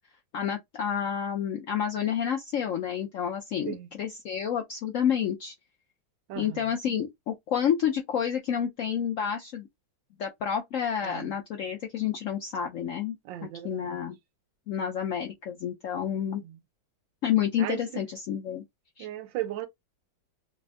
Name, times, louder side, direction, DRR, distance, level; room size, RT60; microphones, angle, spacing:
voice 1, 0.3-5.5 6.4-9.7 10.2-13.2 13.6-14.2 14.7-16.4 17.2-18.6 19.0-19.1, left 8 dB, 80° left, 0.7 m, -29 dB
voice 2, 11.0-11.3 13.2-14.0 16.4-16.6 17.6-18.1 19.0-19.7, right 13 dB, 90° right, 1.4 m, -36 dB
3.4 x 2.1 x 3.4 m
omnidirectional pair, 2.0 m